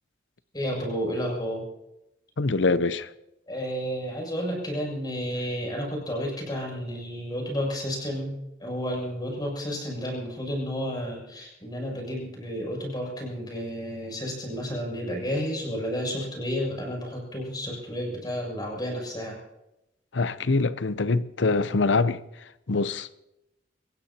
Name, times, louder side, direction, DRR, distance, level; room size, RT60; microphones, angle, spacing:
voice 1, 0.5-1.6 3.5-8.3 8.6-19.4, equal, 25° left, 7.3 m, -31 dB
voice 2, 2.4-3.1 20.1-22.2 22.7-23.1, left 3 dB, 90° left, 0.7 m, -24 dB
27.5 x 16.5 x 2.9 m
head